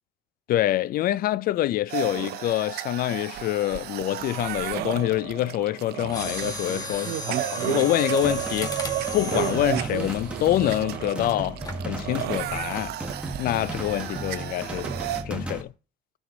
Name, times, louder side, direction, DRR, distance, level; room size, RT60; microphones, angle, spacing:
voice 1, 0.5-8.7 9.1-11.6 11.8-13.0 13.4-14.9 15.2-15.7, left 14 dB, 60° left, 0.4 m, -26 dB
sound 1, 1.9-15.2, right 13 dB, 75° right, 0.7 m, -32 dB
Mechanisms, 6.1-11.1 11.6-11.9 12.5-12.8 13.2-13.3, left 2 dB, 20° left, 2.0 m, -36 dB
sound 2, 8.2-15.6, right 1 dB, 5° right, 1.5 m, -35 dB
13.0 x 6.3 x 3.9 m
cardioid pair, 110°, 17 cm